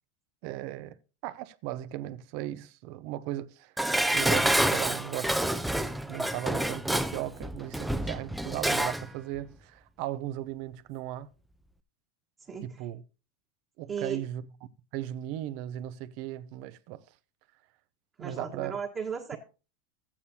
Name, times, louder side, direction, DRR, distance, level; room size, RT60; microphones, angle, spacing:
voice 1, 0.4-1.0 1.2-3.7 4.1-5.4 6.1-11.3 12.6-13.0 13.8-14.4 14.9-17.0 18.2-18.7, right 14 dB, 55° right, 0.6 m, -37 dB
Dishes pots and pans, 3.8-9.1 9.4-9.5, right 1 dB, ahead, 0.4 m, -28 dB
voice 2, 12.4-12.8 13.9-14.2 18.2-19.4, right 6 dB, 20° right, 1.4 m, -36 dB
14.0 x 8.5 x 2.8 m
supercardioid pair, 140°, 0 cm